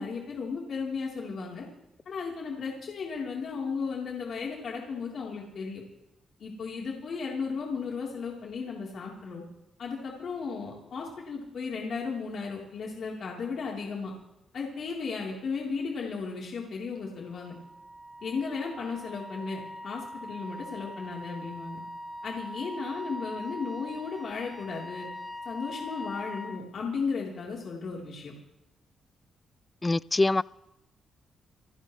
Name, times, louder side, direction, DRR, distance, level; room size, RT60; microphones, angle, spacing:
voice 1, 0.0-1.7 2.1-5.8 6.4-9.4 9.8-14.1 14.5-17.6 18.2-21.8 22.2-25.1 25.5-28.3, left 5 dB, 65° left, 3.8 m, -35 dB
Wind instrument woodwind instrument, 17.2-26.6, left 1 dB, ahead, 1.7 m, -42 dB
voice 2, 29.8-30.4, left 2 dB, 25° left, 0.4 m, -24 dB
28.5 x 11.5 x 3.3 m
supercardioid pair, 60°, 0 cm